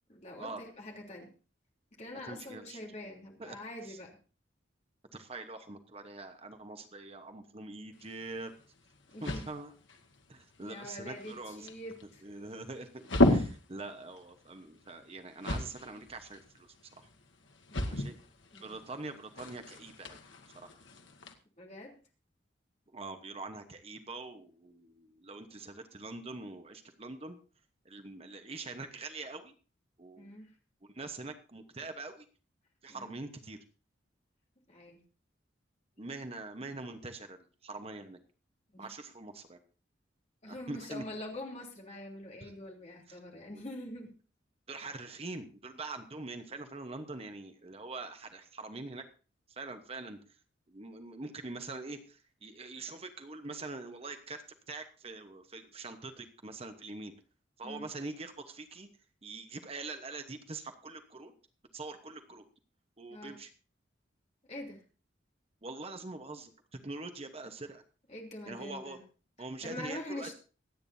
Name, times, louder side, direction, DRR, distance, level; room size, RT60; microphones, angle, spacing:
voice 1, 0.1-1.3 2.0-4.2 9.1-9.5 10.6-12.2 17.7-18.0 18.5-18.8 21.6-22.0 30.2-30.5 32.9-33.2 34.7-35.0 38.7-38.9 40.4-44.1 57.6-57.9 63.1-63.4 64.5-64.8 68.1-69.0 69.4-70.3, left 1 dB, 35° left, 0 dB, 3.2 m, -44 dB
voice 2, 2.3-2.8 3.4-3.6 3.8-4.0 5.1-8.5 9.2-9.7 10.3-11.7 12.2-13.0 13.3-16.7 17.9-18.1 18.6-20.2 20.5-20.7 22.9-27.4 27.8-29.5 30.0-30.4 30.9-32.3 32.8-33.6 36.0-38.2 38.8-39.6 40.5-41.0 42.4-42.5 43.1-43.2 43.5-43.6 44.7-49.1 49.5-50.2 50.7-57.1 57.6-58.9 59.2-61.3 61.7-62.4 63.0-63.5 65.6-67.8 68.5-69.0 69.4-70.3, right 3 dB, 30° right, 7 dB, 1.0 m, -44 dB
sound 1, 7.9-21.3, left 1 dB, 90° left, 1.7 m, -35 dB
24.0 x 9.0 x 2.7 m, 0.36 s
head